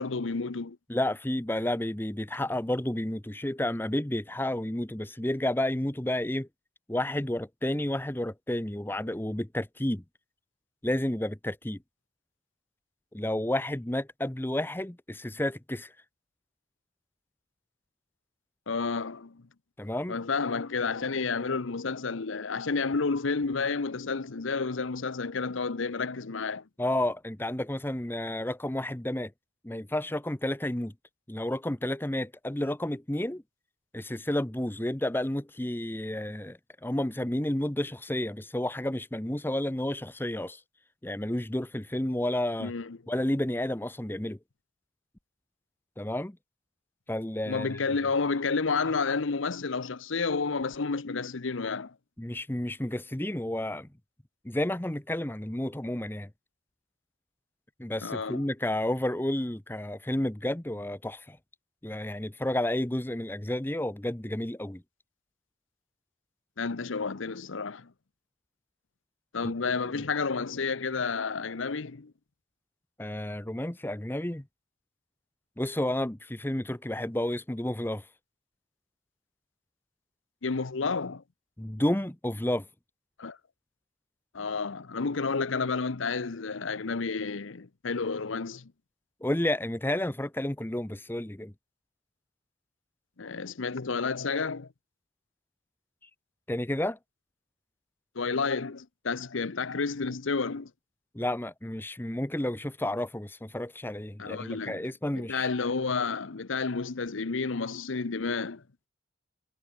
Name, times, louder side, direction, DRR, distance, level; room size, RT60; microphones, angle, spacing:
voice 1, 0.0-0.8 18.7-19.4 20.1-26.6 42.6-43.0 47.5-51.9 58.0-58.4 66.6-67.9 69.3-72.1 80.4-81.2 83.2-83.4 84.3-88.7 93.2-94.7 98.1-100.7 104.2-104.8 105.1-108.6, left 4 dB, 75° left, 0.8 m, -30 dB
voice 2, 0.9-6.5 6.9-10.0 10.8-11.8 13.1-15.9 19.8-20.2 26.8-29.3 29.6-30.9 31.3-33.4 33.9-40.6 41.0-42.7 43.1-44.4 46.0-46.4 47.1-47.8 52.2-53.9 54.4-56.3 57.8-61.4 61.8-64.8 69.4-69.5 69.9-70.0 73.0-74.4 75.6-78.0 81.6-82.7 89.2-91.5 96.5-97.0 101.1-105.5, left 1 dB, 10° left, 0.8 m, -31 dB
head